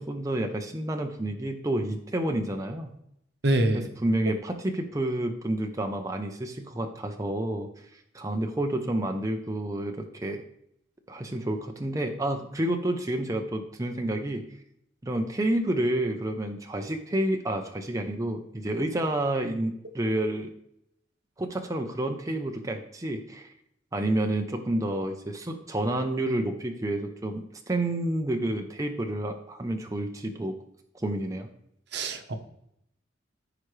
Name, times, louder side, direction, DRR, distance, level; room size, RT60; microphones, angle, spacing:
voice 1, 0.0-2.9 3.7-10.4 11.1-14.4 15.0-20.5 21.4-23.5 23.9-30.6 30.9-31.5, right 1 dB, 20° right, 4 dB, 0.6 m, -29 dB
voice 2, 3.4-3.9 31.9-32.3, right 1 dB, 60° right, 7 dB, 1.0 m, -25 dB
14.5 x 5.0 x 3.2 m, 0.75 s
head